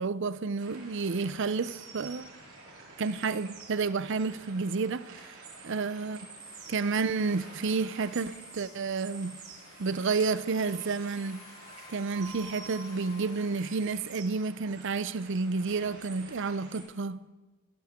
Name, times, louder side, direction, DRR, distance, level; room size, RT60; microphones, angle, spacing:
voice 1, 0.0-2.3 3.0-5.3 5.6-6.3 6.7-9.4 9.8-11.4 11.9-17.2, right 4 dB, 55° right, 0.5 m, -30 dB
sound 1, 0.6-16.8, right 4 dB, 80° right, 7.3 m, -49 dB
sound 2, 6.4-13.8, left 1 dB, 70° left, 4.6 m, -52 dB
23.5 x 16.5 x 3.7 m
head